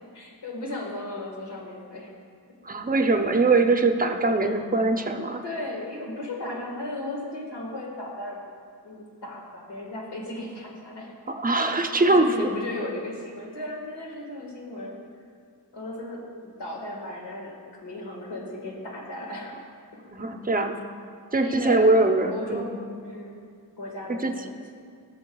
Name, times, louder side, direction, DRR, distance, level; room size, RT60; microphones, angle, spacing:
voice 1, 0.0-2.1 4.4-4.5 5.4-8.4 8.8-11.1 12.1-15.0 15.7-19.6 19.9-20.3 21.4-22.0 22.2-22.7 23.0-23.4 23.8-24.7, left 1 dB, 90° left, -2 dB, 1.7 m, -36 dB
voice 2, 2.6-5.4 11.3-12.5 20.1-20.8 21.3-22.7 24.1-24.4, right 2 dB, 20° right, 5 dB, 0.5 m, -22 dB
16.5 x 7.0 x 2.3 m, 2.3 s
wide cardioid pair, 105°, 40 cm